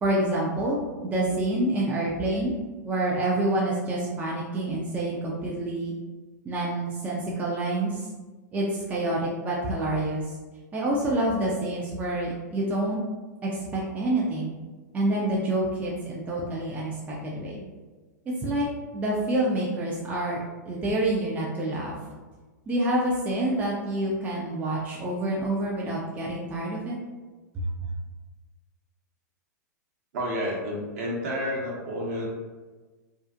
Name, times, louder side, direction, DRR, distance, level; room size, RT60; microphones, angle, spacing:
voice 1, 0.0-2.5 2.8-5.9 6.5-8.0 8.5-10.2 10.7-13.0 13.4-14.5 14.9-17.6 18.4-18.7 18.9-22.0 22.7-27.0 27.5-27.6, right 1 dB, 15° right, -4 dB, 0.4 m, -27 dB
voice 2, 30.1-32.3, equal, 55° right, -4 dB, 0.9 m, -30 dB
2.4 x 2.3 x 2.4 m, 1.3 s
figure-of-eight pair, 105°, 10 cm